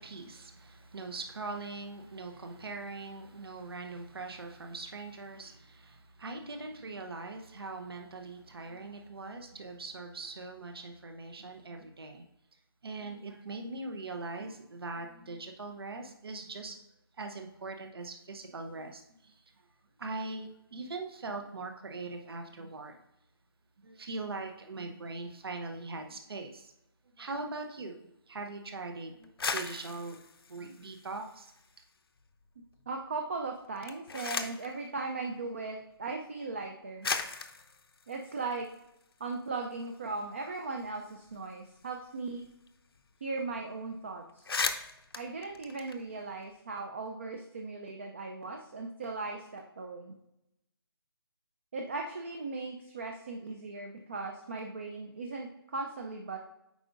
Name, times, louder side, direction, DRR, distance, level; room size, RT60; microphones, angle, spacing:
voice 1, 0.0-12.2 12.8-16.8 17.2-19.4 20.0-23.0 23.8-26.7 27.2-30.2 30.5-31.5, right 3 dB, 70° right, 4 dB, 0.9 m, -41 dB
sound 1, 29.2-31.8 32.2-32.9 33.6-34.7 35.8-35.9 36.6-36.7 37.0-39.3 39.7-39.8 40.1-42.7 42.9-43.1 43.3-43.6 44.0-44.1 44.3-46.5, left 4 dB, 70° left, 0.7 m, -38 dB
voice 2, 32.9-37.1 38.1-38.7 39.2-42.4 43.2-44.6 45.2-50.1 51.7-56.4, right 3 dB, 30° right, 3 dB, 0.5 m, -38 dB
8.3 x 5.1 x 2.5 m, 0.85 s
hypercardioid pair, 175°, 13 cm